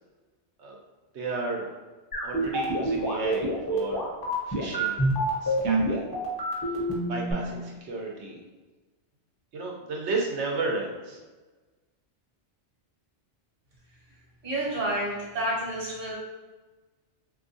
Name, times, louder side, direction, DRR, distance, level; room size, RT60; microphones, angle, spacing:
voice 1, 1.1-1.7 2.2-4.0 4.5-5.1 5.4-6.1 7.1-8.4 9.5-11.2, right 3 dB, 80° right, -1 dB, 1.0 m, -33 dB
sound 1, 2.1-7.3, right 1 dB, 25° left, 0.7 m, -27 dB
voice 2, 14.4-16.1, right 1 dB, 55° right, -4 dB, 1.2 m, -29 dB
3.5 x 2.7 x 2.6 m, 1.3 s
omnidirectional pair, 1.1 m